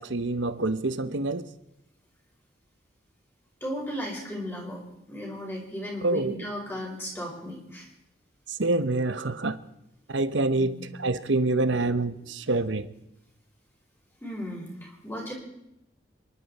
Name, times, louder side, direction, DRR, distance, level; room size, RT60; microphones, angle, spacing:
voice 1, 0.0-1.5 6.0-6.5 8.5-9.6 10.1-12.9, right 2 dB, 85° right, 12 dB, 0.9 m, -26 dB
voice 2, 3.6-4.8 5.1-7.9 10.6-10.8 12.1-12.2 14.2-15.3, equal, 10° left, -2 dB, 4.6 m, -35 dB
28.5 x 11.5 x 4.2 m, 0.85 s
head